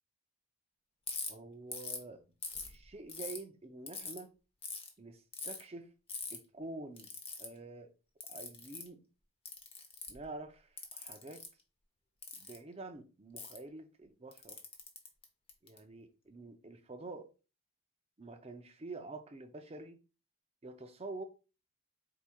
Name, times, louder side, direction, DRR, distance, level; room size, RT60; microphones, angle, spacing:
Ratchet pawl, 1.1-1.3 1.7-2.0 2.4-3.4 3.9-4.2 4.6-4.9 5.3-5.6 6.1-6.4 7.0-7.5 8.2-8.9 9.5-10.2 10.8-11.5 12.2-12.6 13.4-13.6 14.3-15.8, left 5 dB, 25° left, 0.8 m, -42 dB
voice 1, 1.3-2.2 2.7-4.3 5.0-5.9 6.3-7.1 7.4-7.9 8.3-9.0 10.1-11.5 12.4-14.6 15.6-17.3 18.2-20.0 20.6-21.2, right 2 dB, 25° right, 0.5 m, -47 dB
4.7 x 4.2 x 2.3 m
head